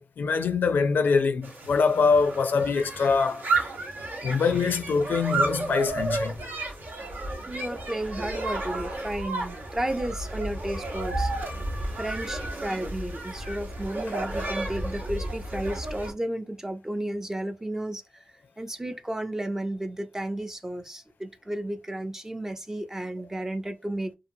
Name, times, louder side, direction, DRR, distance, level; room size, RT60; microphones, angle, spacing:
voice 1, 0.0-3.4 4.2-6.3, left 5 dB, 70° left, 0.4 m, -24 dB
sound 1, 1.4-16.1, right 2 dB, 75° right, 1.0 m, -32 dB
voice 2, 7.5-11.3 12.0-18.0 18.6-24.1, right 1 dB, 15° right, 0.4 m, -33 dB
2.8 x 2.4 x 2.6 m
wide cardioid pair, 100°, 3 cm